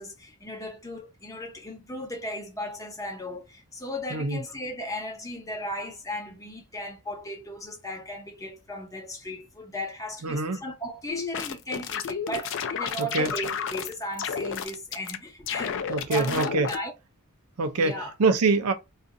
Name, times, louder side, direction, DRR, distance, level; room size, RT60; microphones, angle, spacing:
voice 1, 0.0-16.9 17.8-18.1, left 1 dB, 15° left, 0.7 m, -36 dB
voice 2, 10.2-10.6 13.0-13.3 15.9-16.7 17.6-18.7, right 3 dB, 85° right, 0.5 m, -24 dB
sound 1, 11.1-13.9 14.2-15.2 15.5-16.8, left 7 dB, 60° left, 0.4 m, -31 dB
2.5 x 2.4 x 3.8 m
head